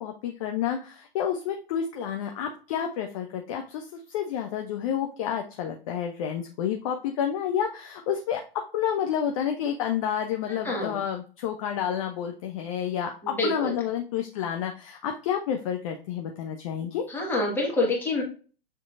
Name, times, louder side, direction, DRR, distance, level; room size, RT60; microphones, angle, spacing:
voice 1, 0.0-8.4 8.7-17.0, left 9 dB, 35° left, 3 dB, 0.5 m, -30 dB
voice 2, 10.5-11.0 13.2-13.7 17.1-18.2, left 2 dB, 5° left, -3 dB, 1.4 m, -27 dB
6.5 x 2.9 x 2.4 m, 0.38 s
figure-of-eight pair, 105°, 30 cm